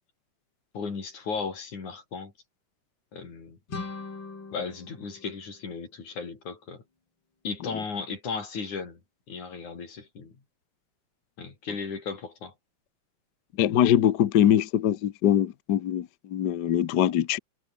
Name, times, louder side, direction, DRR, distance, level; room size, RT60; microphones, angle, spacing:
voice 1, 0.7-2.3 3.1-3.6 4.5-6.8 7.4-9.0 9.3-10.4 11.4-12.5, left 5 dB, 85° left, 6.2 m, -35 dB
sound 1, 3.7-6.5, left 4 dB, 40° left, 4.8 m, -41 dB
voice 2, 13.6-17.4, left 10 dB, 65° left, 1.0 m, -23 dB
omnidirectional pair, 3.3 m